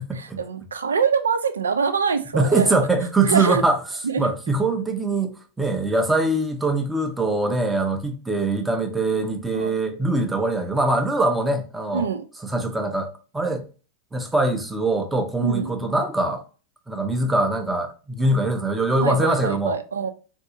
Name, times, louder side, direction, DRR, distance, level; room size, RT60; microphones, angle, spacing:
voice 1, 0.0-2.8 3.2-3.6 4.0-4.3 9.5-9.8 11.9-12.2 15.4-15.7 19.0-20.1, right 6 dB, 70° right, 0.4 m, -24 dB
voice 2, 2.3-3.8 4.2-5.3 5.6-12.1 12.5-13.1 13.3-13.6 14.1-16.4 16.9-19.8, right 2 dB, 10° right, 0.6 m, -22 dB
4.0 x 2.6 x 2.6 m
figure-of-eight pair, 90°, 0 cm